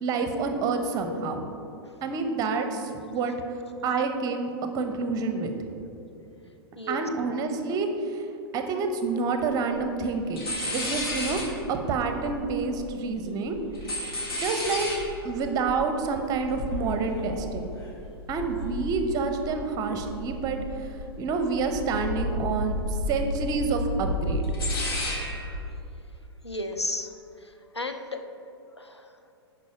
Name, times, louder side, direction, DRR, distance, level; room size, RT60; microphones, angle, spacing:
voice 1, 0.0-1.4 2.0-3.3 3.8-5.5 6.9-8.2 8.5-10.5 10.7-13.6 14.4-14.9 15.2-17.7 18.3-22.8 23.1-24.5, right 4 dB, 25° right, 6 dB, 0.8 m, -28 dB
voice 2, 6.8-7.1 26.4-27.1 27.4-28.2 28.8-29.1, left 2 dB, 90° left, 5 dB, 0.7 m, -33 dB
sound 1, 9.4-9.5 9.7-10.1 10.4-13.1 13.4-19.7 20.0-21.0 21.3-25.6, left 1 dB, 65° left, 1.9 m, -32 dB
10.5 x 4.9 x 4.8 m, 2.7 s
figure-of-eight pair, 100°, 14 cm